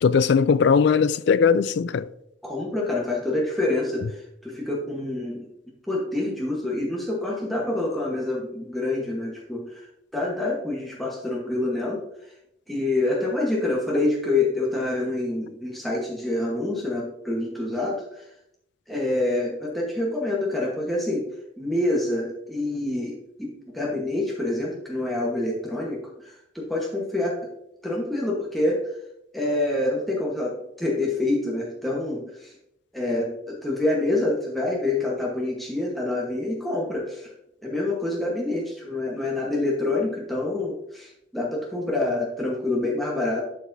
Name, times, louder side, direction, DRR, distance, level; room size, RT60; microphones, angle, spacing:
voice 1, 0.0-2.1, left 6 dB, 65° left, 0.3 m, -19 dB
voice 2, 2.4-5.5 5.9-9.9 10.1-12.0 12.7-18.2 18.9-21.3 21.6-27.4 27.8-28.8 29.3-32.5 32.9-37.3 37.6-43.5, left 2 dB, ahead, 1.1 m, -27 dB
11.0 x 4.6 x 2.7 m
head